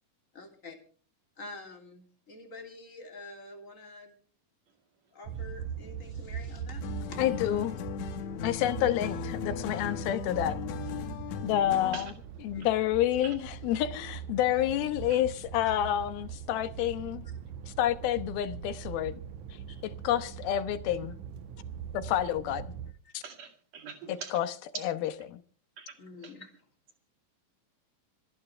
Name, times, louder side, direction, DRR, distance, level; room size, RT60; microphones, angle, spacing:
voice 1, 0.3-0.8 1.4-4.1 5.1-6.8 7.1-7.2 12.5-12.6 15.6-15.8 19.7-19.8 23.0-23.2 26.0-26.5, left 3 dB, 25° left, 2.8 m, -47 dB
sound 1, 5.2-22.9, right 8 dB, 70° right, 2.0 m, -41 dB
sound 2, 6.8-12.2, left 9 dB, 70° left, 1.7 m, -37 dB
voice 2, 7.2-7.8 8.4-10.6 11.4-12.1 12.4-17.3 17.7-19.2 19.8-21.1 21.9-22.7 23.1-23.2 24.1-25.4, left 11 dB, 85° left, 3.0 m, -29 dB
voice 3, 23.2-24.3 25.8-25.9 26.2-26.3, right 6 dB, 50° right, 3.2 m, -43 dB
26.0 x 11.5 x 3.3 m
omnidirectional pair, 4.2 m